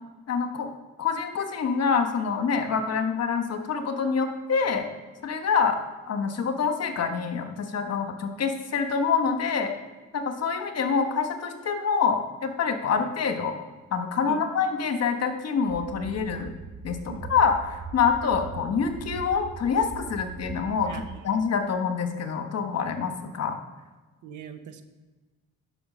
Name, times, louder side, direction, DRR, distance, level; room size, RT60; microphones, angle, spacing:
voice 1, 0.3-0.7 1.0-4.9 5.2-5.8 6.1-9.7 10.1-13.5 13.9-16.5 16.8-20.9 21.2-23.6, left 6 dB, 55° left, 6 dB, 1.4 m, -26 dB
sound 1, 15.7-21.2, right 5 dB, 25° right, 0.8 m, -40 dB
voice 2, 20.9-21.3 24.2-24.8, right 6 dB, 80° right, 8 dB, 1.1 m, -40 dB
10.0 x 5.9 x 6.2 m, 1.3 s
cardioid pair, 90°, 30 cm